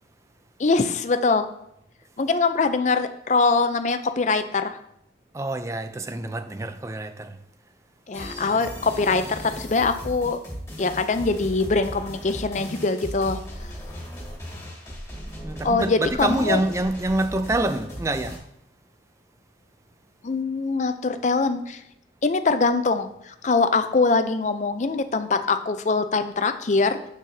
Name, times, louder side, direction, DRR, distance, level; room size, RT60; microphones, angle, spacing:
voice 1, 0.6-1.5 2.2-4.8 8.1-10.4 10.8-13.4 15.6-16.6 20.2-21.8 22.2-27.0, left 4 dB, 40° left, 0.5 m, -23 dB
voice 2, 5.3-7.4 15.4-18.4, right 2 dB, 15° right, 0.4 m, -26 dB
sound 1, 8.1-18.4, equal, 15° left, 2.0 m, -37 dB
7.4 x 6.4 x 2.7 m
head